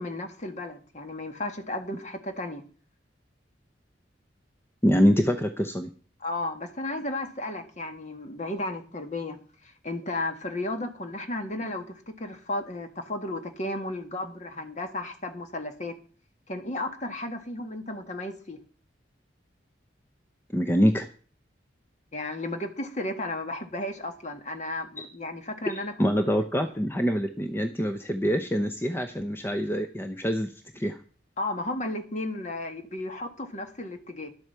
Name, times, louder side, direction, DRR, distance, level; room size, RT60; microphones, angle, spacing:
voice 1, 0.0-2.6 6.2-16.0 16.5-18.6 22.1-26.3 31.4-34.3, left 2 dB, 40° left, 6 dB, 1.7 m, -34 dB
voice 2, 4.8-5.9 20.5-21.1 25.0-25.1 25.7-31.0, equal, 15° left, 7 dB, 0.7 m, -25 dB
11.5 x 7.9 x 6.8 m, 0.42 s
head